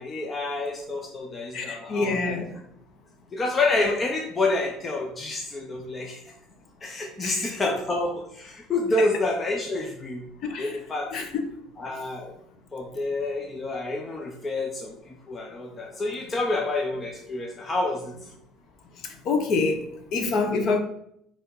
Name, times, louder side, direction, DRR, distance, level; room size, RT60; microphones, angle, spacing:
voice 1, 0.0-2.4 3.3-6.2 6.8-10.3 10.6-11.1 11.8-12.4 12.7-18.3, left 2 dB, 15° left, 1 dB, 0.6 m, -28 dB
voice 2, 1.5-2.6 7.2-7.5 10.4-10.8 11.1-11.4 19.0-20.8, left 4 dB, 40° left, 6 dB, 0.9 m, -26 dB
5.5 x 3.4 x 5.6 m, 0.72 s
cardioid pair, 175°, 0 cm